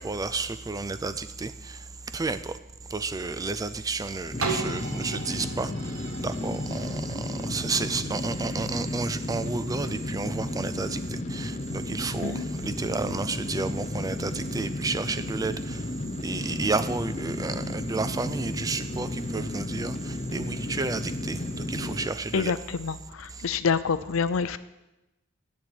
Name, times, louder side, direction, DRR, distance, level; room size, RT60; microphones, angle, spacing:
voice 1, 0.0-1.5 2.1-2.5 2.9-5.7 6.2-11.0 11.3-12.3 12.6-15.8 16.2-20.0 20.3-21.4 21.7-22.5, right 3 dB, 15° right, 0.4 m, -31 dB
sound 1, 4.3-22.1, left 1 dB, 30° left, 0.7 m, -33 dB
sound 2, 4.4-10.1 10.7-10.8, right 4 dB, 80° right, 1.3 m, -37 dB
voice 2, 22.3-24.6, left 5 dB, 70° left, 0.5 m, -27 dB
8.4 x 7.2 x 7.9 m
head